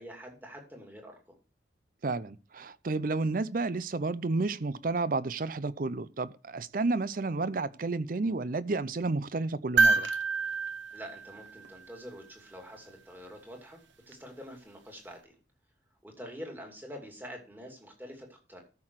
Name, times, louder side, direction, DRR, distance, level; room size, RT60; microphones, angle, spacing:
voice 1, 0.0-1.4 10.9-13.8 14.1-15.4 16.0-18.6, equal, 10° right, 2.5 m, -46 dB
voice 2, 2.0-10.1, right 3 dB, 50° right, 0.5 m, -31 dB
sound 1, 9.8-12.1 14.1-14.2, right 4 dB, 80° right, 1.1 m, -27 dB
13.0 x 5.9 x 4.7 m
head